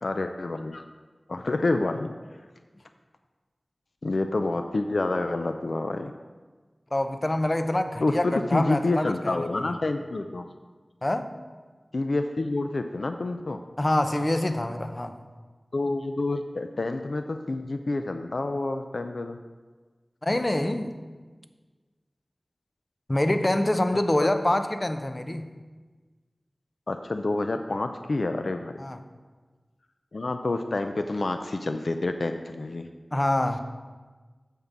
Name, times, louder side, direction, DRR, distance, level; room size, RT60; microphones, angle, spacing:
voice 1, 0.0-0.8 1.3-2.2 4.0-6.1 8.0-10.5 11.9-13.6 15.7-19.4 24.2-24.3 26.9-28.7 30.1-32.9, left 2 dB, 80° left, 7 dB, 0.4 m, -28 dB
voice 2, 6.9-9.6 11.0-11.3 13.8-15.2 20.2-20.9 23.1-25.5 28.8-29.0 33.1-33.6, left 1 dB, 35° left, 8 dB, 0.6 m, -26 dB
9.5 x 3.7 x 7.1 m, 1.4 s
wide cardioid pair, 45°, 0 cm